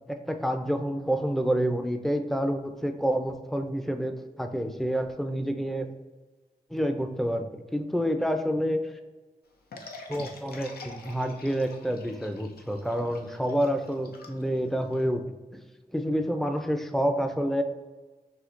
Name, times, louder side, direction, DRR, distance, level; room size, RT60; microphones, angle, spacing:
voice 1, 0.1-5.9 6.7-8.9 10.1-15.2 15.5-15.6 15.9-17.6, equal, ahead, 6 dB, 0.5 m, -28 dB
sound 1, 9.7-15.0, left 3 dB, 80° left, 0.5 m, -46 dB
5.8 x 2.7 x 2.5 m, 1.3 s
cardioid pair, 40°, 16 cm